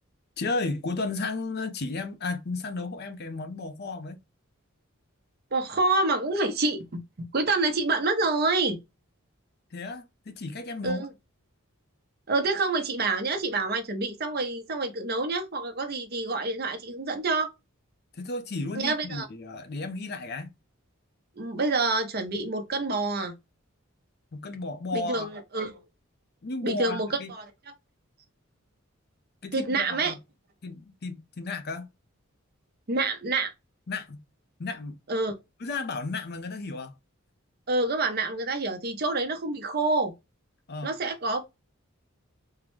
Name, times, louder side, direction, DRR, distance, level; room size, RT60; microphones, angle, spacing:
voice 1, 0.4-4.2 9.7-11.1 18.1-20.5 24.3-25.3 26.4-27.3 29.4-30.2 30.6-31.9 33.9-34.2 34.6-35.0 35.6-36.9 40.7-40.9, left 3 dB, 50° left, 0.6 m, -33 dB
voice 2, 5.5-8.8 10.8-11.1 12.3-17.5 18.8-19.3 21.4-23.3 24.9-25.9 26.6-27.5 29.5-30.1 32.9-33.5 35.1-35.4 37.7-40.1 40.8-41.4, right 3 dB, 50° right, 0.7 m, -27 dB
3.7 x 2.1 x 3.0 m
head